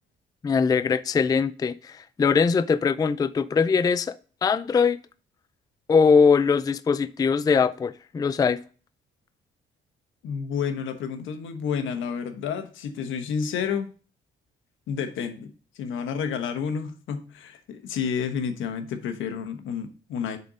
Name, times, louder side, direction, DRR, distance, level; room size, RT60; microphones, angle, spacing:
voice 1, 0.4-4.1 4.4-5.0 5.9-8.6, left 5 dB, 20° left, 0.3 m, -21 dB
voice 2, 10.2-13.9 14.9-20.4, left 7 dB, 80° left, 1.1 m, -30 dB
6.8 x 4.0 x 4.9 m
cardioid pair, 90°, 20 cm